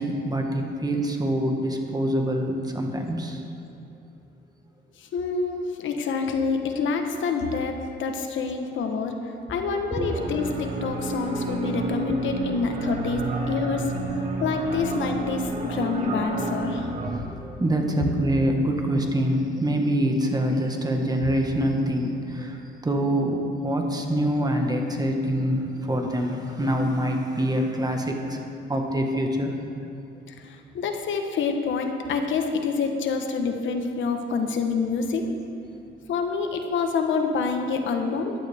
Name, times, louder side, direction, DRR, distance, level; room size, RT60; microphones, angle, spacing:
voice 1, 0.0-3.4 10.0-10.1 17.4-22.6 22.8-28.4 28.7-29.5, equal, 20° right, 2 dB, 1.6 m, -25 dB
voice 2, 5.0-9.1 9.5-13.9 14.4-16.9 30.4-35.3 36.1-38.3, left 4 dB, 75° left, 5 dB, 1.2 m, -27 dB
sound 1, 10.0-17.2, right 2 dB, 40° right, 1.9 m, -30 dB
15.0 x 11.5 x 3.6 m, 2.6 s
cardioid pair, 90°, 20 cm